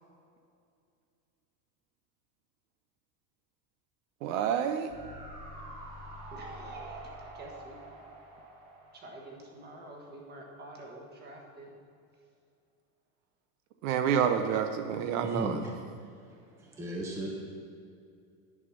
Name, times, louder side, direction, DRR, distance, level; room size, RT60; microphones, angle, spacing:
voice 1, 4.2-4.9 13.8-15.6, right 8 dB, 70° right, 7 dB, 0.7 m, -28 dB
sound 1, 4.9-10.1 10.4-10.5, right 1 dB, 50° right, 1.9 m, -46 dB
voice 2, 6.3-7.8 8.9-11.7, right 1 dB, 25° right, -1 dB, 1.5 m, -48 dB
voice 3, 15.2-15.6 16.6-17.3, right 1 dB, 5° right, -2 dB, 0.7 m, -36 dB
10.5 x 4.3 x 6.1 m, 2.4 s
supercardioid pair, 150°, 43 cm